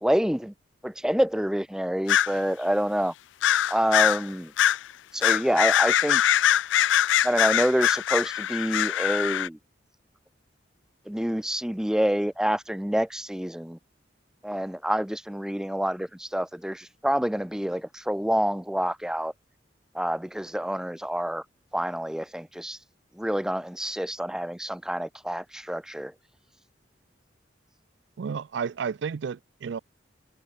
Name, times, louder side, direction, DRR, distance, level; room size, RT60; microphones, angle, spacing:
voice 1, 0.0-0.5 0.8-3.1 3.7-4.5 5.1-6.4 7.2-9.6 11.1-13.8 14.4-19.3 19.9-21.4 21.7-22.8 23.1-26.1, equal, 5° right, 0.4 m, -27 dB
sound 1, 2.1-2.3 3.4-4.2 4.6-4.8 5.2-9.5, left 11 dB, 80° left, 0.4 m, -22 dB
voice 2, 28.2-29.8, right 6 dB, 70° right, 0.4 m, -32 dB
head